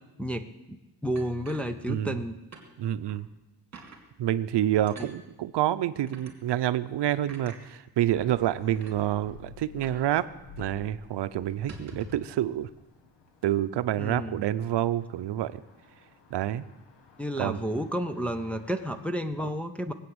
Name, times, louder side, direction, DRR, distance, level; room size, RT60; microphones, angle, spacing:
voice 1, 1.0-2.4 5.0-5.1 14.0-14.4 17.2-19.9, equal, 5° left, 4 dB, 0.6 m, -31 dB
sound 1, 1.2-2.2 2.5-2.7 3.1-3.2 3.7-4.0 4.9-5.1 6.1-6.3 7.3-7.6 8.4-8.5 8.8-9.0 9.8-10.1 10.3-10.4 10.8-11.0 11.5-12.3, right 2 dB, 35° right, 2.6 m, -46 dB
voice 2, 2.8-3.3 4.2-10.3 10.6-12.7 13.4-15.6 16.3-16.7 17.4-17.6, right 12 dB, 70° right, 12 dB, 0.7 m, -28 dB
sound 2, 8.1-19.0, left 6 dB, 80° left, 2.2 m, -53 dB
20.5 x 8.4 x 7.9 m, 1.0 s
wide cardioid pair, 170°, 43 cm